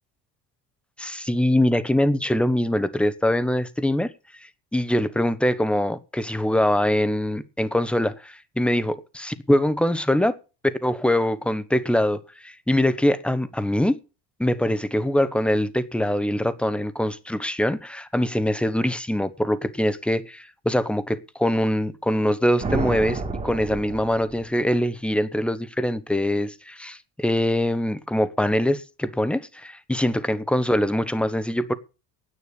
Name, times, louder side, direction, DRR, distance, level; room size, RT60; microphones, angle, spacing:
voice 1, 1.0-4.1 4.7-10.4 10.6-14.0 14.4-31.7, left 1 dB, 5° left, 1.0 m, -23 dB
sound 1, 22.6-24.7, right 4 dB, 20° right, 2.1 m, -30 dB
9.8 x 8.9 x 8.5 m
cardioid pair, 140°, 32 cm